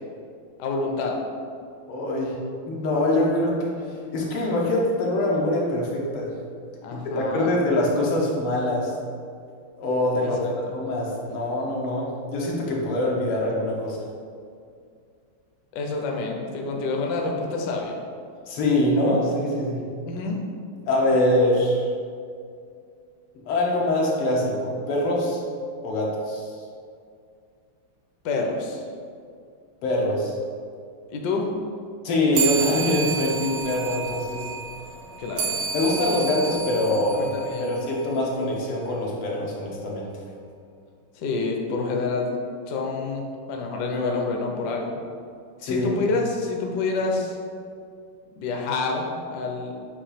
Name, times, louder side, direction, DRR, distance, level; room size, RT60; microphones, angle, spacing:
voice 1, 0.6-1.2 6.8-7.5 10.2-10.5 15.7-18.0 20.1-20.4 28.2-28.8 31.1-31.5 35.2-35.6 37.1-37.7 41.2-42.3 42.7-44.9 45.6-47.4 48.4-49.7, left 3 dB, 65° left, 1 dB, 1.1 m, -28 dB
voice 2, 1.9-2.4 2.7-3.7 4.1-6.3 6.9-8.9 9.8-14.0 18.5-19.8 20.9-21.9 23.5-25.4 25.8-26.5 29.8-30.3 32.0-34.4 35.7-37.3 37.6-40.1 45.6-45.9, left 1 dB, 85° left, -3 dB, 2.0 m, -24 dB
sound 1, 32.3-38.2, right 5 dB, 80° right, 1.6 m, -30 dB
7.4 x 2.6 x 5.0 m, 2.3 s
omnidirectional pair, 2.4 m